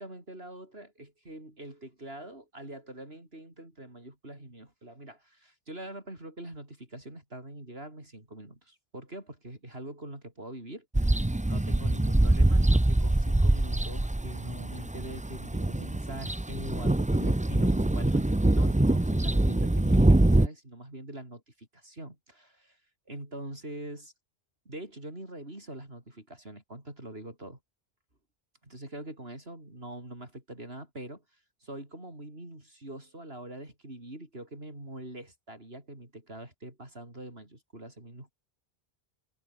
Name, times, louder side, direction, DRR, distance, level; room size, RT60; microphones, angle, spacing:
voice 1, 0.0-22.8 23.1-24.1 24.6-27.6 28.6-38.3, right 1 dB, 65° right, 6.9 m, -44 dB
sound 1, 10.9-20.5, right 1 dB, 10° right, 0.5 m, -24 dB
omnidirectional pair, 1.1 m